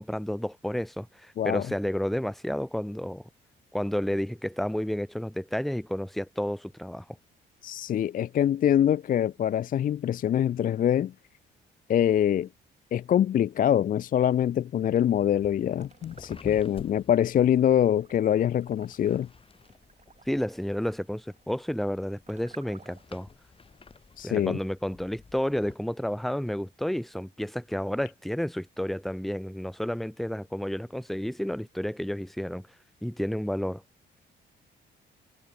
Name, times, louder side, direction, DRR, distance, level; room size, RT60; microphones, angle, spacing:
voice 1, 0.0-3.2 3.7-7.0 20.3-23.3 24.2-32.7 33.0-33.8, equal, ahead, 0.9 m, -31 dB
voice 2, 1.4-1.7 7.6-11.1 11.9-12.5 12.9-19.3 24.2-24.6, left 10 dB, 45° left, 0.4 m, -24 dB
sound 1, 14.9-25.8, left 4 dB, 25° left, 1.9 m, -51 dB
sound 2, 15.8-16.9 17.3-23.2, right 5 dB, 35° right, 7.9 m, -55 dB
cardioid pair, 90°, 20 cm